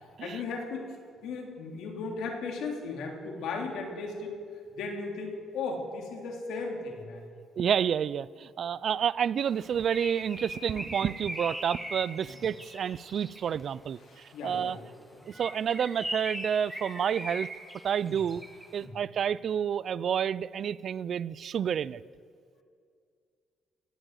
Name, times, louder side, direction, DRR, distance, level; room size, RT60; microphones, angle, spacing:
voice 1, 0.2-0.8 1.2-4.3 4.7-7.2 14.1-14.8 18.0-18.1 18.8-18.9, left 4 dB, 85° left, 2 dB, 2.8 m, -36 dB
voice 2, 7.6-14.0 14.4-14.8 15.3-17.5 17.8-18.4 18.7-22.0, right 8 dB, 60° right, 20 dB, 0.4 m, -29 dB
Bird, 9.5-13.6 15.2-18.7, equal, 5° right, 2.0 m, -40 dB
17.5 x 9.1 x 8.0 m, 2.3 s
cardioid pair, 90°, 0 cm